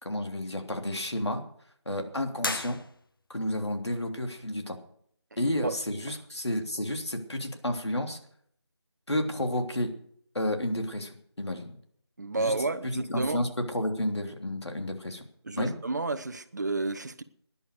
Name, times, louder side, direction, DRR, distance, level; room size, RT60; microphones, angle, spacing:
voice 1, 0.0-1.4 1.8-2.8 3.3-4.8 5.4-8.2 9.1-9.9 10.3-11.7 12.4-12.5 12.9-15.2 15.6-15.7, left 1 dB, 75° left, 3.3 m, -31 dB
sound 1, 2.4-3.4, left 2 dB, 50° left, 1.1 m, -35 dB
voice 2, 5.4-5.8 6.1-6.2 12.2-13.4 15.4-17.2, right 3 dB, 40° right, 1.1 m, -31 dB
18.0 x 11.0 x 6.6 m
figure-of-eight pair, 165°, 14 cm